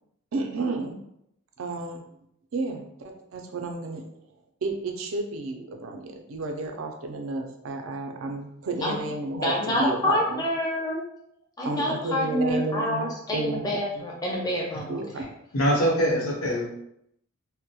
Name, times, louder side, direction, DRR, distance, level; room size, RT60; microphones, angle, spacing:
voice 1, 0.3-1.0 1.6-2.0 2.5-4.0 4.6-10.4 10.9-11.0 11.6-14.0 14.8-15.2 16.1-16.3, right 2 dB, 70° right, 4 dB, 0.4 m, -31 dB
voice 2, 9.3-11.0 11.6-15.2, left 1 dB, 15° left, -2 dB, 0.4 m, -27 dB
voice 3, 15.5-16.7, equal, 80° left, -3 dB, 0.8 m, -23 dB
2.2 x 2.1 x 2.7 m, 0.76 s
head